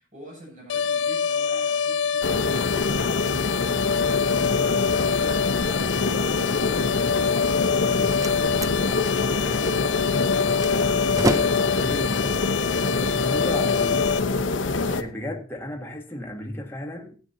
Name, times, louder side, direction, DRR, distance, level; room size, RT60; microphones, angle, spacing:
voice 1, 0.0-3.3 3.7-11.1 11.6-12.1 13.3-13.8, right 1 dB, 45° right, 7.2 m, -46 dB
sound 1, 0.7-14.2, left 6 dB, 70° left, 0.4 m, -26 dB
sound 2, 2.2-15.0, left 3 dB, 90° left, 0.9 m, -25 dB
voice 2, 4.3-4.7 11.8-12.3 13.0-14.0 14.9-17.2, left 1 dB, 10° left, 1.7 m, -34 dB
Slam, 7.6-13.6, right 1 dB, 20° right, 0.6 m, -33 dB
16.5 x 9.4 x 2.7 m
head